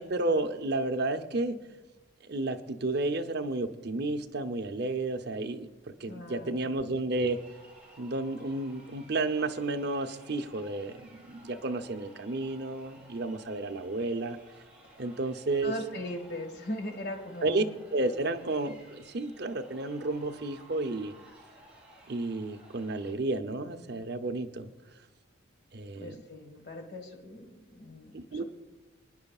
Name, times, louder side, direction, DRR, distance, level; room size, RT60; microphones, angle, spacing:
voice 1, 0.0-1.6 2.3-7.4 8.0-14.4 15.0-15.7 17.4-17.6 17.9-21.1 22.1-24.7 25.7-26.2 28.1-28.4, right 2 dB, 55° right, 6 dB, 0.7 m, -32 dB
voice 2, 6.1-6.7 15.6-17.7 26.0-28.4, left 1 dB, 55° left, 4 dB, 1.6 m, -39 dB
Crowd, 7.0-23.1, right 1 dB, 5° right, 2.7 m, -56 dB
26.0 x 9.7 x 2.4 m, 1.1 s
head